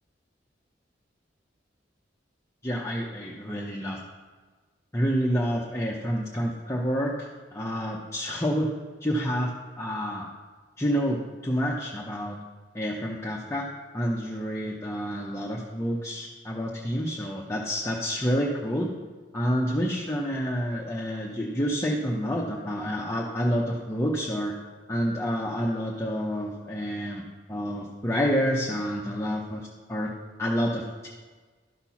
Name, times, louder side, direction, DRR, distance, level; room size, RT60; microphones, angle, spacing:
voice 1, 2.6-4.0 4.9-8.7 9.0-9.5 9.8-10.3 10.8-12.4 12.7-13.7 13.9-18.9 19.3-24.5 24.9-27.2 27.5-30.1 30.4-31.1, equal, 15° left, -3 dB, 0.7 m, -28 dB
12.5 x 4.4 x 5.7 m, 1.4 s
head